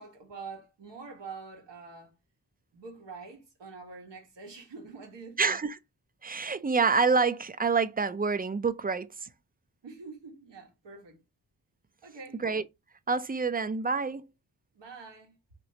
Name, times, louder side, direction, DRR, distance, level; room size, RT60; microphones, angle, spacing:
voice 1, 0.0-2.1 2.7-5.6 9.8-11.2 12.0-12.4 14.7-15.4, right 4 dB, 90° right, 1.4 m, -45 dB
voice 2, 5.4-5.8 6.2-9.1 12.4-12.6 13.1-14.3, right 4 dB, 20° right, 0.4 m, -27 dB
3.1 x 3.0 x 2.7 m
cardioid pair, 50°, 42 cm